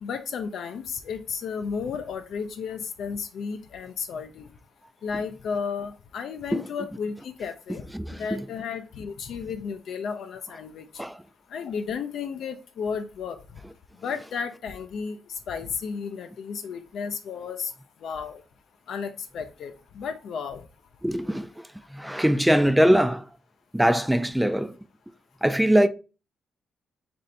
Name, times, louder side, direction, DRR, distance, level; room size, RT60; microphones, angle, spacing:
voice 1, 0.0-4.5 5.0-7.8 8.1-10.9 11.5-13.4 14.0-17.7 18.0-18.4 18.9-20.6, left 6 dB, 65° left, 0.4 m, -33 dB
voice 2, 7.9-8.4 11.0-11.2 21.0-21.5 21.9-23.3 23.7-24.7 25.4-25.9, equal, 5° right, 0.3 m, -21 dB
3.2 x 2.6 x 4.0 m
cardioid pair, 90°, 0 cm